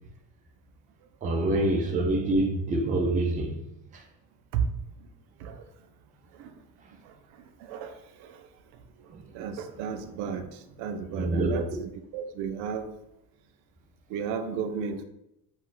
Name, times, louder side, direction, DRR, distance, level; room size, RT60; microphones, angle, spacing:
voice 1, 1.2-3.5 11.2-11.6, right 1 dB, 20° right, 0.3 m, -25 dB
voice 2, 7.6-8.4 9.3-12.9 14.1-15.0, right 7 dB, 90° right, 0.5 m, -33 dB
2.5 x 2.3 x 3.7 m
cardioid pair, 140°, 38 cm